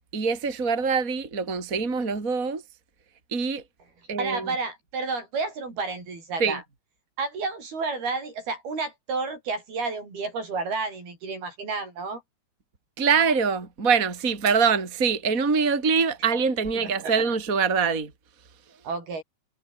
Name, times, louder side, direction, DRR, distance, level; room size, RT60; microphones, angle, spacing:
voice 1, 0.1-2.6 3.3-3.6 4.1-4.5 6.4-6.6 13.0-18.1, right 5 dB, 20° right, 3.6 m, -24 dB
voice 2, 4.2-6.6 7.2-12.2 17.0-17.2 18.8-19.2, right 4 dB, 70° right, 9.9 m, -31 dB
omnidirectional pair, 4.6 m